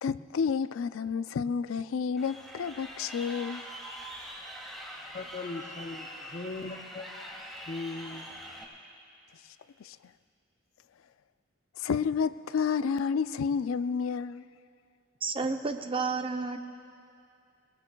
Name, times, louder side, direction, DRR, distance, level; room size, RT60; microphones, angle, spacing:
voice 1, 0.0-3.6 9.8-10.0 11.8-14.4, left 6 dB, 80° left, 0.4 m, -30 dB
Crowd, 2.2-8.6, equal, ahead, 1.8 m, -43 dB
voice 2, 5.1-7.2 7.7-8.2, left 3 dB, 35° left, 0.7 m, -39 dB
voice 3, 15.2-16.6, right 4 dB, 25° right, 0.6 m, -31 dB
25.0 x 19.5 x 2.3 m
head